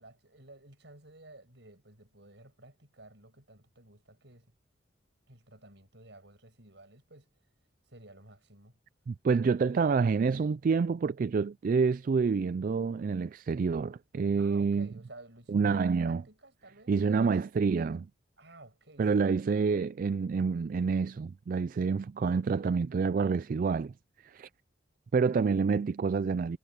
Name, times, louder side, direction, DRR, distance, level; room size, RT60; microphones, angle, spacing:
voice 1, 0.0-4.5 5.3-7.3 7.9-8.8 14.4-16.9 18.4-19.6, right 2 dB, 65° right, 7.2 m, -54 dB
voice 2, 9.1-14.9 15.5-16.2 16.9-18.1 19.0-23.9 24.2-24.5 25.1-26.6, right 5 dB, 45° right, 0.3 m, -28 dB
head